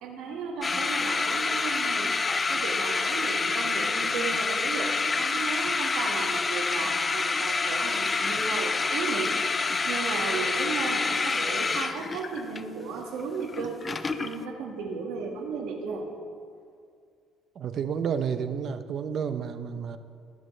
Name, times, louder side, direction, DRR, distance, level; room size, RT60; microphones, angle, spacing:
voice 1, 0.0-2.1 2.5-9.3 9.9-13.8 14.2-16.1, right 4 dB, 75° right, 1 dB, 1.8 m, -34 dB
sound 1, 0.6-14.5, left 4 dB, 25° left, 0.5 m, -27 dB
voice 2, 17.6-20.0, right 7 dB, 50° right, 10 dB, 0.7 m, -31 dB
21.5 x 7.4 x 3.3 m, 2.3 s
cardioid pair, 110°, 0 cm